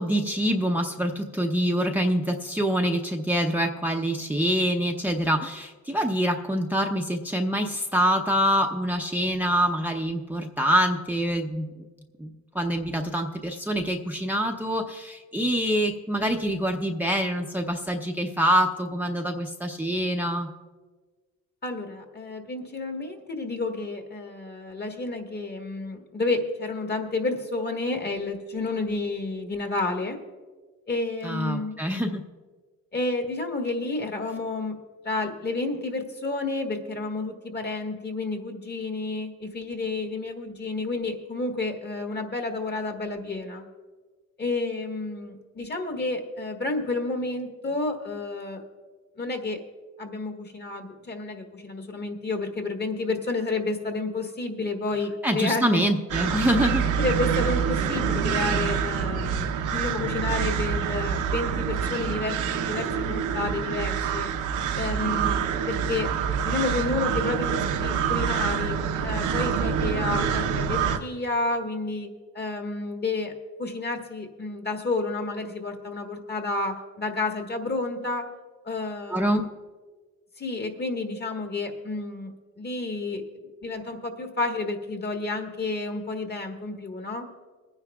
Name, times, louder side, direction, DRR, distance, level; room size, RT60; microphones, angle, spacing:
voice 1, 0.0-11.9 12.2-12.3 12.5-20.5 31.2-32.2 55.2-56.9 79.1-79.4, equal, 5° right, 2 dB, 0.6 m, -25 dB
voice 2, 21.6-30.2 30.9-31.8 32.9-34.8 35.0-43.6 44.4-48.6 49.2-49.6 50.0-55.8 57.0-62.4 62.7-64.3 64.7-66.1 66.4-72.1 72.3-73.3 73.6-78.3 78.6-79.5 80.4-83.2 83.6-87.3, left 3 dB, 35° left, 3 dB, 1.6 m, -30 dB
sound 1, 56.1-71.0, right 7 dB, 80° right, 0.9 m, -26 dB
25.0 x 9.6 x 2.4 m, 1.4 s
cardioid pair, 90°, 30 cm